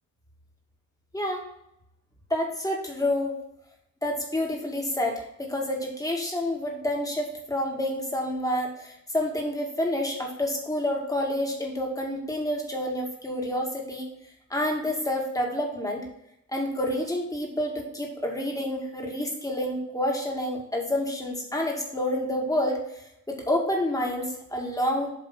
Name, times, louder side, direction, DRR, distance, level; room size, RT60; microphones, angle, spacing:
voice 1, 1.1-1.4 2.3-3.3 4.0-14.1 14.5-16.0 16.5-25.1, left 1 dB, 10° left, -1 dB, 2.3 m, -28 dB
7.7 x 3.7 x 6.1 m, 0.81 s
cardioid pair, 95°, 30 cm